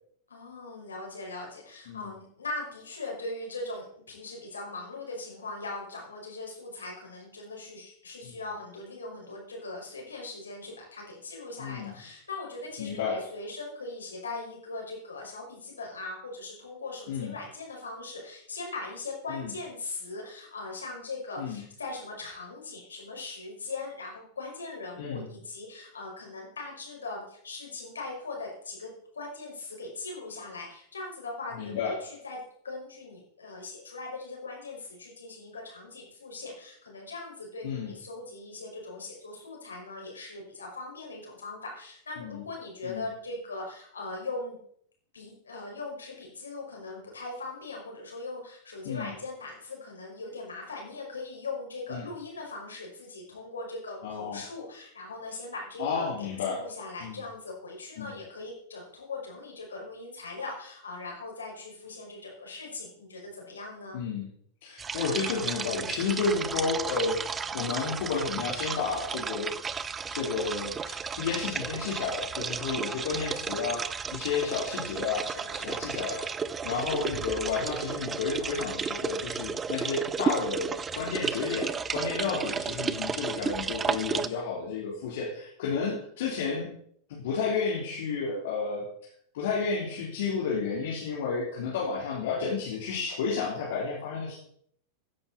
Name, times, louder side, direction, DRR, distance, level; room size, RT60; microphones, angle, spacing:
voice 1, 0.3-32.4 32.6-44.6 45.1-64.0 74.9-75.8, left 3 dB, 70° left, -1 dB, 5.5 m, -40 dB
voice 2, 11.6-11.9 12.8-13.3 17.1-17.3 19.3-19.5 21.4-21.6 25.0-25.3 31.6-31.9 37.6-37.9 42.2-42.4 42.8-43.1 48.8-49.1 51.9-52.1 54.0-54.4 55.8-56.6 57.0-57.2 58.0-58.1 63.9-64.3 64.6-69.6 70.1-75.3 75.6-76.3 76.6-86.7 87.1-88.9 89.3-94.3, left 5 dB, 55° left, -4 dB, 3.6 m, -31 dB
sound 1, 64.8-84.3, right 6 dB, 20° right, 0.6 m, -33 dB
16.0 x 10.5 x 4.2 m, 0.64 s
figure-of-eight pair, 90°, 0 cm